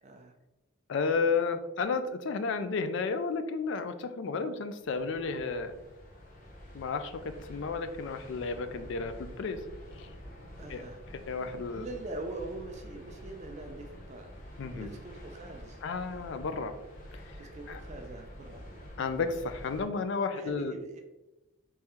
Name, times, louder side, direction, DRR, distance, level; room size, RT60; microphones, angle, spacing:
voice 1, 0.0-0.3 10.6-11.0 11.7-14.3 14.7-15.8 17.4-18.6 20.3-21.0, right 2 dB, 35° right, 4 dB, 0.3 m, -43 dB
voice 2, 0.9-5.7 6.7-9.6 10.0-10.1 10.7-10.8 11.3-11.8 14.6-14.9 15.8-16.7 17.1-17.2 17.7-17.8 19.0-20.8, left 4 dB, 60° left, 9 dB, 0.3 m, -32 dB
sound 1, 4.8-19.8, equal, 40° left, 0.7 m, -48 dB
3.6 x 3.1 x 2.9 m, 1.0 s
head